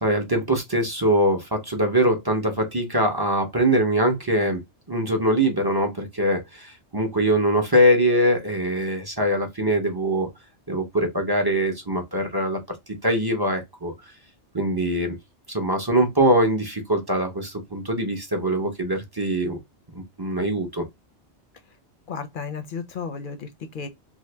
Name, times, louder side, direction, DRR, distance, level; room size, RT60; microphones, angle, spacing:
voice 1, 0.0-4.6 4.9-10.3 10.7-12.6 13.0-13.9 14.5-15.2 15.5-19.6 19.9-20.8, right 1 dB, 25° right, 0.7 m, -22 dB
voice 2, 22.1-23.9, left 5 dB, 55° left, 0.7 m, -33 dB
2.7 x 2.5 x 3.2 m
omnidirectional pair, 1.2 m